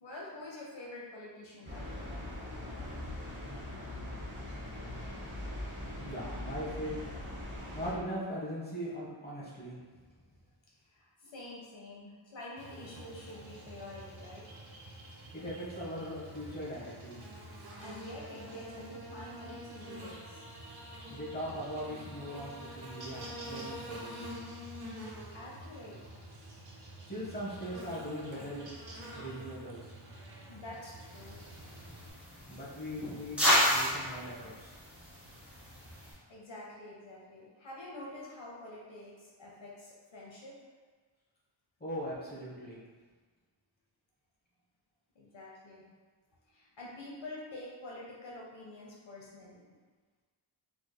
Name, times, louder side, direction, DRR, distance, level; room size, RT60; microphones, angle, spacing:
voice 1, 0.0-2.2 10.8-14.5 17.8-20.4 25.3-26.0 30.5-31.4 35.7-40.6 45.2-45.9 46.5-49.6, left 1 dB, 65° left, -4 dB, 0.7 m, -47 dB
sound 1, 1.6-7.9, left 1 dB, 25° right, 1.0 m, -41 dB
voice 2, 6.0-7.0 7.7-9.8 15.3-17.2 21.1-24.3 27.1-28.6 29.1-29.9 32.5-33.4 33.7-34.8 41.8-42.8, equal, 20° left, -7 dB, 0.9 m, -40 dB
Buzz, 12.6-32.1, right 1 dB, 50° right, 0.7 m, -47 dB
sound 2, 31.0-36.1, equal, ahead, 1.4 m, -32 dB
3.3 x 3.1 x 2.2 m, 1.4 s
wide cardioid pair, 100°, 48 cm